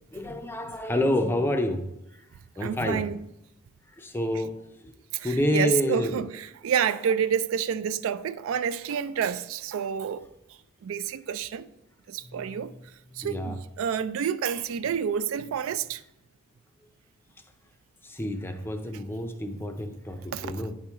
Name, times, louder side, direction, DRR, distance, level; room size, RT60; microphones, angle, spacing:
voice 1, 0.1-1.9 2.1-2.3 2.6-3.0 3.9-4.9 5.2-6.2 12.2-12.8 13.1-13.6 18.0-20.7, left 1 dB, 10° left, 0.5 m, -29 dB
voice 2, 2.6-3.2 5.1-5.3 5.5-10.2 10.8-11.7 12.1-12.7 13.2-16.0 20.3-20.6, right 8 dB, 65° right, 0.3 m, -29 dB
9.3 x 4.4 x 3.5 m
head